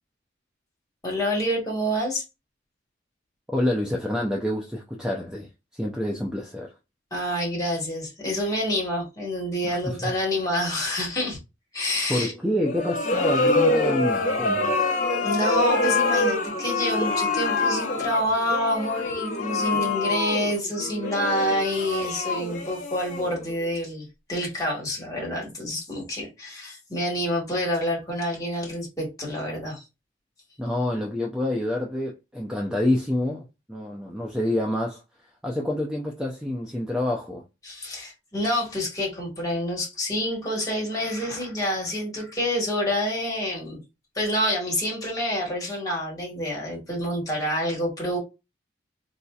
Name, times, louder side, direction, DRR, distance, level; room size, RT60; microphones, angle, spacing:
voice 1, 1.0-2.2 7.1-11.4 11.7-12.3 15.2-29.8 37.6-43.8 44.1-48.2, equal, 20° left, 1.4 m, -27 dB
voice 2, 3.5-6.7 9.6-10.1 12.1-14.8 19.7-19.8 30.6-35.0 35.4-37.4, left 1 dB, 5° right, 0.4 m, -27 dB
sound 1, 12.6-23.6, left 2 dB, 40° left, 0.8 m, -25 dB
4.1 x 2.7 x 2.3 m
head